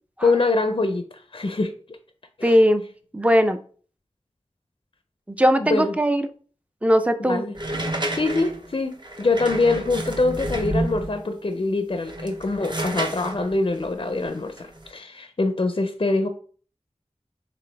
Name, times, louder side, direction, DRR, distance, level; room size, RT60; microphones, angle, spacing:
voice 1, 0.2-1.0 1.3-1.7 2.4-2.6 5.7-5.9 7.2-7.5 8.1-16.3, left 3 dB, 50° left, 7 dB, 0.4 m, -24 dB
voice 2, 2.4-2.8 3.1-3.6 5.3-6.2 6.8-7.5, equal, 10° right, 9 dB, 0.4 m, -19 dB
sound 1, 7.5-11.2 11.9-14.9, right 1 dB, 40° right, 0.8 m, -30 dB
4.1 x 3.3 x 3.3 m, 0.43 s
wide cardioid pair, 50°, 12 cm